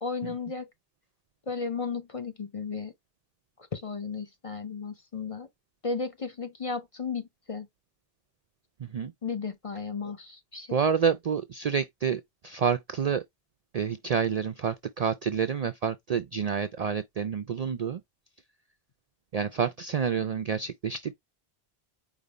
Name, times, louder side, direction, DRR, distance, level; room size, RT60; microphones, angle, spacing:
voice 1, 0.0-0.7 1.5-2.9 3.7-5.5 5.8-7.7 9.2-10.8, left 5 dB, 35° left, 0.6 m, -34 dB
voice 2, 8.8-9.1 10.7-13.2 13.7-18.0 19.3-21.1, right 7 dB, 55° right, 0.4 m, -28 dB
5.1 x 2.5 x 4.1 m
omnidirectional pair, 1.1 m